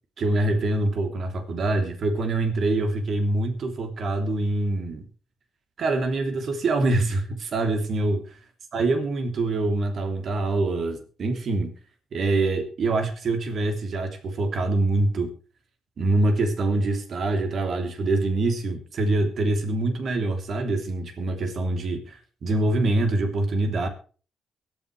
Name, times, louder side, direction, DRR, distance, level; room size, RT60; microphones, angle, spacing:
voice 1, 0.2-5.0 5.8-8.2 8.7-11.7 12.1-15.3 16.0-23.9, right 2 dB, 60° right, 6 dB, 3.2 m, -25 dB
23.0 x 9.6 x 3.3 m, 0.38 s
hypercardioid pair, 50°, 0 cm